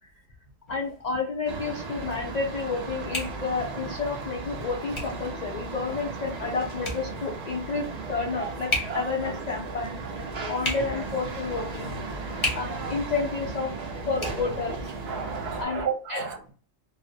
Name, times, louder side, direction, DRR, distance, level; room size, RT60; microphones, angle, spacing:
voice 1, 0.7-10.0 10.5-11.9 12.5-13.7 14.1-14.8 15.6-15.8 16.1-16.2, left 4 dB, 80° left, -1 dB, 0.3 m, -30 dB
sound 1, 0.7-15.8, left 1 dB, 30° left, 0.6 m, -38 dB
sound 2, 1.5-15.7, right 3 dB, 75° right, 0.3 m, -36 dB
voice 2, 12.2-12.6 15.1-16.5, right 6 dB, 60° right, -1 dB, 0.8 m, -33 dB
2.3 x 2.0 x 2.6 m, 0.40 s
omnidirectional pair, 1.3 m